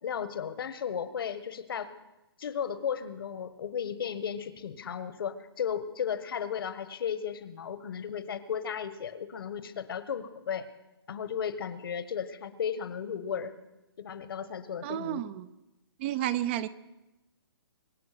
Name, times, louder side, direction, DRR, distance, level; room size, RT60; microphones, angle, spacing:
voice 1, 0.0-1.9 2.4-10.7 11.1-13.5 14.0-15.2, left 8 dB, 65° left, 12 dB, 1.4 m, -35 dB
voice 2, 14.8-15.5 16.0-16.7, right 12 dB, 25° right, 15 dB, 0.6 m, -31 dB
24.5 x 8.5 x 6.0 m, 0.99 s
hypercardioid pair, 155°, 13 cm